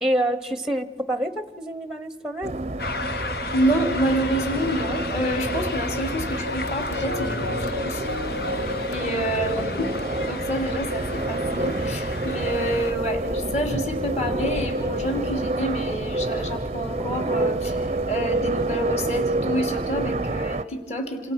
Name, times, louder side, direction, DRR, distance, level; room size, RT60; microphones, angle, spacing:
voice 1, 0.0-2.6 9.6-10.0, right 1 dB, 5° right, 13 dB, 1.0 m, -27 dB
sound 1, 2.4-20.6, right 2 dB, 35° right, 0.7 m, -28 dB
sound 2, 2.8-12.9, left 3 dB, 60° left, 1.1 m, -34 dB
voice 2, 3.5-8.0 8.9-9.9 10.2-17.8 18.1-21.3, right 1 dB, 40° left, 4 dB, 3.3 m, -28 dB
sound 3, 6.4-10.8, left 1 dB, 75° left, 1.4 m, -34 dB
29.0 x 26.0 x 6.0 m, 1.4 s
head